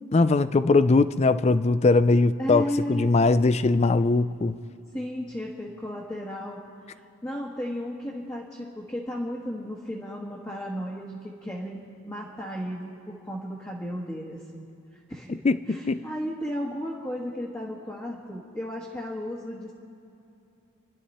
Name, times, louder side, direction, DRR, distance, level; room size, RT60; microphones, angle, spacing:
voice 1, 0.1-4.6 15.4-16.0, left 3 dB, 30° left, 0.4 m, -21 dB
voice 2, 2.4-3.1 4.9-6.6 6.9-14.6 15.1-19.7, equal, 10° left, 1.3 m, -34 dB
29.0 x 11.0 x 4.2 m
head